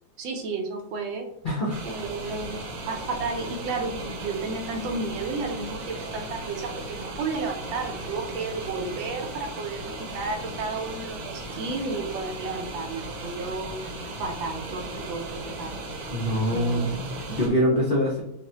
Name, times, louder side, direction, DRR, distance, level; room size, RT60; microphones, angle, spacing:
voice 1, 0.2-1.3 1.8-2.6 2.9-13.8 14.2-15.8 16.5-16.9, right 3 dB, 85° right, 4 dB, 1.5 m, -32 dB
voice 2, 1.4-1.8 16.1-18.2, equal, 85° left, -5 dB, 0.4 m, -24 dB
sound 1, 1.7-17.5, right 2 dB, 60° right, 1.2 m, -36 dB
5.8 x 2.2 x 2.8 m, 0.85 s
omnidirectional pair, 2.1 m